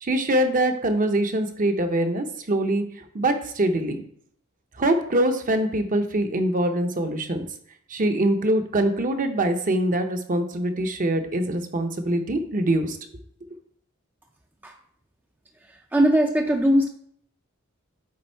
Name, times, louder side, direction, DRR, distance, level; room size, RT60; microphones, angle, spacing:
voice 1, 0.0-4.0 4.8-7.5 7.9-13.0, right 1 dB, 40° right, 6 dB, 0.8 m, -24 dB
voice 2, 15.6-16.9, equal, 10° right, 2 dB, 0.5 m, -21 dB
8.6 x 3.6 x 4.5 m, 0.63 s
head